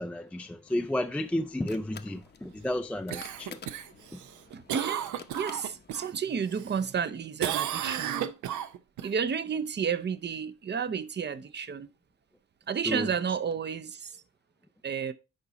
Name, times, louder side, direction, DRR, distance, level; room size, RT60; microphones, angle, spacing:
voice 1, 0.0-3.6 4.1-4.2 12.9-13.1, left 1 dB, 5° left, 0.3 m, -32 dB
sound 1, 0.7-6.2, left 6 dB, 35° left, 0.8 m, -51 dB
Cough, 3.1-6.1 6.5-7.1 7.4-9.1 13.5-13.6, right 11 dB, 75° right, 0.7 m, -34 dB
voice 2, 4.5-5.1 5.3-8.3 9.0-11.9 12.7-14.2 14.8-15.1, right 6 dB, 35° right, 0.6 m, -31 dB
10.5 x 4.0 x 4.0 m
cardioid pair, 90°, 30 cm